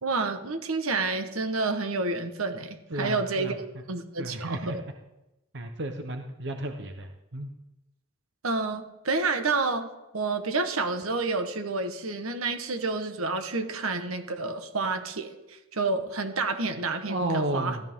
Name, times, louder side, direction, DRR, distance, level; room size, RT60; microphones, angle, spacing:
voice 1, 0.0-3.6 3.9-4.8 8.4-9.9 10.1-15.3 15.7-17.8, right 3 dB, 85° right, 7 dB, 1.3 m, -29 dB
voice 2, 2.9-3.5 4.2-4.8 5.5-7.5 17.1-17.8, right 1 dB, 55° right, 5 dB, 1.0 m, -32 dB
15.0 x 13.0 x 3.7 m, 0.94 s
head